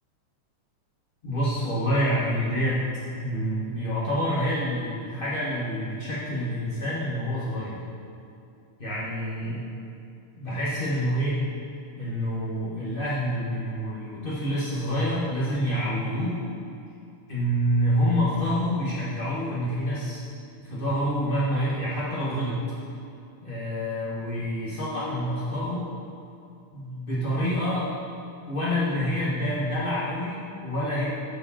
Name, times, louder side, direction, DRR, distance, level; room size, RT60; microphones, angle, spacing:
voice 1, 1.2-2.9 3.2-7.8 8.8-9.6 10.4-11.4 12.0-16.4 17.3-20.2 20.6-22.6 23.4-25.8 26.7-27.9 28.5-31.0, equal, 90° left, -9 dB, 0.4 m, -27 dB
13.5 x 4.8 x 4.2 m, 2.6 s
omnidirectional pair, 3.6 m